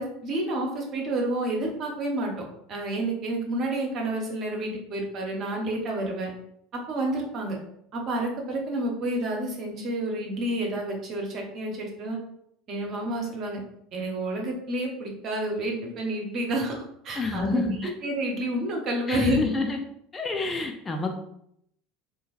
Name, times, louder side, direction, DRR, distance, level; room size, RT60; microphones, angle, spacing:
voice 1, 0.0-2.3 2.7-6.3 6.7-7.6 7.9-12.2 12.7-13.6 13.9-19.4, right 1 dB, 40° right, 0 dB, 0.9 m, -29 dB
voice 2, 17.2-17.9 19.1-19.8 20.1-21.1, left 4 dB, 25° left, 3 dB, 0.4 m, -28 dB
3.7 x 2.6 x 2.4 m, 0.73 s
figure-of-eight pair, 70°, 0 cm